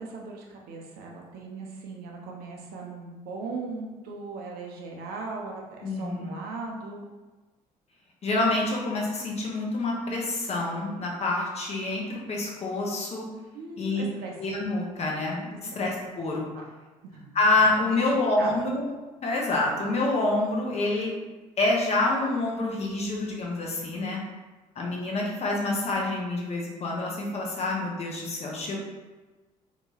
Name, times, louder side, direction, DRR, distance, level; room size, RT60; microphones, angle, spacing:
voice 1, 0.0-7.1 13.5-14.3 15.7-15.8 16.5-16.6 17.0-17.3 17.8-18.1 18.4-18.5, right 3 dB, 55° right, -1 dB, 0.5 m, -38 dB
voice 2, 5.8-6.4 8.2-13.2 13.8-14.0 14.4-15.5 15.8-16.4 17.3-18.9 19.2-21.1 21.6-24.2 24.8-28.8, left 2 dB, 35° left, -2 dB, 0.7 m, -27 dB
2.8 x 2.2 x 2.8 m, 1.2 s
figure-of-eight pair, 50°, 19 cm